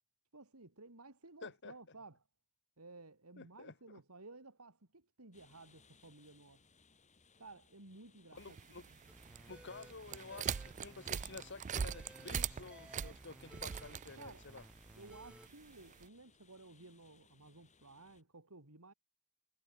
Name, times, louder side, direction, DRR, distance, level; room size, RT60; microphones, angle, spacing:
voice 1, 0.3-2.2 2.8-6.6 7.4-8.6 14.2-14.4 15.0-18.9, right 3 dB, 80° right, 3.1 m, -56 dB
voice 2, 1.4-1.7 3.4-3.7 8.3-8.9 9.5-14.6, left 4 dB, 55° left, 1.9 m, -51 dB
sound 1, 5.3-18.2, left 4 dB, 35° left, 3.6 m, -68 dB
sound 2, 8.4-16.1, right 8 dB, 35° right, 0.3 m, -43 dB
sound 3, 9.1-15.5, equal, 5° right, 5.1 m, -58 dB
head